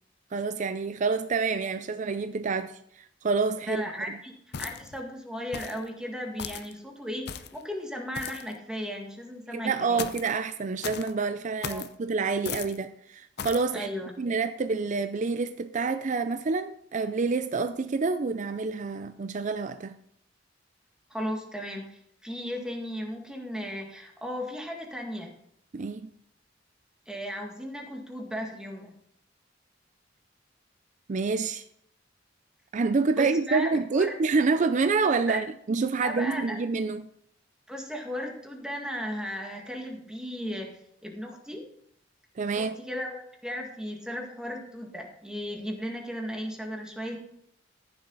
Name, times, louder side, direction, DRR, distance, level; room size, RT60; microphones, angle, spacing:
voice 1, 0.3-4.2 9.5-13.9 14.2-20.0 25.7-26.1 31.1-31.6 32.7-37.1 42.4-42.8, right 4 dB, 40° right, 0.4 m, -28 dB
voice 2, 3.7-4.3 4.6-10.1 11.7-11.8 13.7-14.1 21.1-25.3 27.1-28.9 33.2-34.1 35.2-35.4 36.0-36.6 37.7-40.7 41.0-41.6 42.4-47.3, equal, 5° right, 1.8 m, -36 dB
sound 1, 4.5-5.0 5.5-5.8 6.4-6.7 7.3-7.6 8.1-8.5 10.0-10.3 10.8-11.1 11.6-11.9 12.5-12.8 13.4-13.7, left 7 dB, 55° left, 0.6 m, -37 dB
14.5 x 7.0 x 4.0 m
head